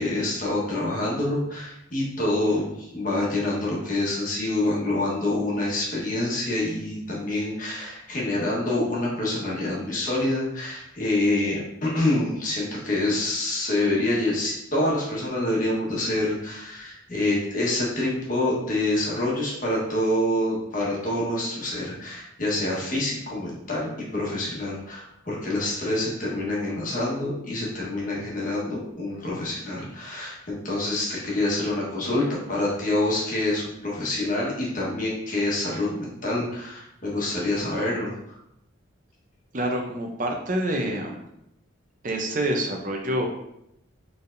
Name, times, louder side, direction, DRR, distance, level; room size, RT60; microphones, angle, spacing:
voice 1, 0.0-38.1, left 1 dB, 40° left, -5 dB, 1.3 m, -26 dB
voice 2, 39.5-41.2 42.0-43.3, right 1 dB, 40° right, 2 dB, 0.6 m, -27 dB
4.5 x 3.4 x 2.6 m, 0.80 s
head